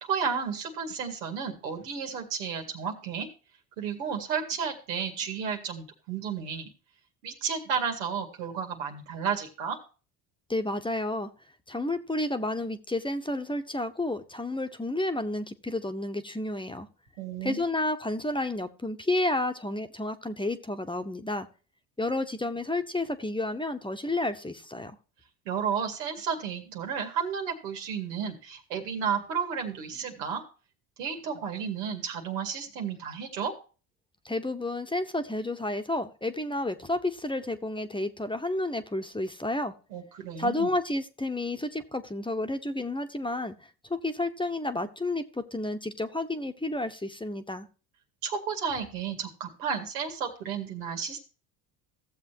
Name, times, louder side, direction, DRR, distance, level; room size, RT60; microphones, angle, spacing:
voice 1, 0.0-3.3 3.8-6.7 7.2-9.8 17.2-17.6 25.5-30.4 31.0-33.5 39.9-40.7 48.2-51.2, right 6 dB, 90° right, 3 dB, 2.2 m, -32 dB
voice 2, 10.5-11.3 11.7-16.9 17.4-21.5 22.0-25.0 34.2-39.7 40.4-43.5 43.9-47.7, left 2 dB, 10° left, 8 dB, 1.1 m, -31 dB
15.0 x 7.3 x 2.8 m, 0.35 s
hypercardioid pair, 70°, 47 cm